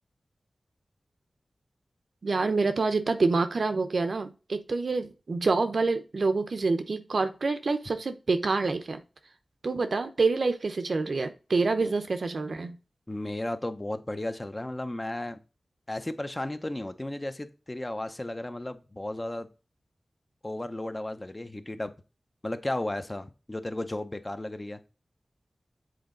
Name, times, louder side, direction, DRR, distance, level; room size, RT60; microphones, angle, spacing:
voice 1, 2.2-9.0 9.6-12.8, right 3 dB, 70° right, 0.8 m, -27 dB
voice 2, 13.1-15.4 15.9-19.5 20.4-21.9 22.4-24.8, left 1 dB, 25° left, 0.8 m, -34 dB
7.8 x 3.9 x 3.8 m
wide cardioid pair, 55°, 0 cm